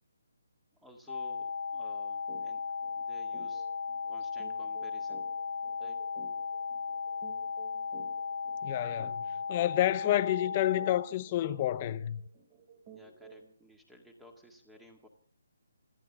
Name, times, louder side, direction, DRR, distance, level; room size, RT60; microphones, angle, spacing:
voice 1, 0.8-2.7 2.9-3.7 4.1-5.3 5.8-6.0 12.9-15.1, equal, 5° right, 2.0 m, -55 dB
sound 1, 1.1-11.1, left 5 dB, 55° left, 1.3 m, -36 dB
sound 2, 2.3-2.5 2.8-3.0 3.3-13.6, right 5 dB, 25° right, 2.9 m, -54 dB
voice 2, 8.6-9.2 9.5-12.2, left 13 dB, 25° left, 0.7 m, -29 dB
27.5 x 14.0 x 3.6 m
hypercardioid pair, 170°, 0 cm